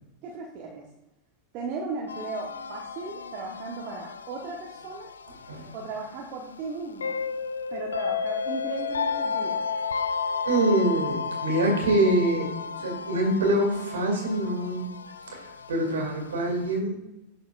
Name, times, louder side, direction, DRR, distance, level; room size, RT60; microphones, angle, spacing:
voice 1, 0.2-0.9 1.5-5.1 5.7-7.2 7.7-9.6, right 4 dB, 40° right, -2 dB, 1.2 m, -36 dB
sound 1, 2.1-16.8, left 5 dB, 70° left, 0.4 m, -33 dB
voice 2, 10.4-12.5 12.8-14.9 15.3-16.9, right 1 dB, 65° right, 2 dB, 2.4 m, -25 dB
11.5 x 4.3 x 2.5 m, 0.96 s
figure-of-eight pair, 90°, 0 cm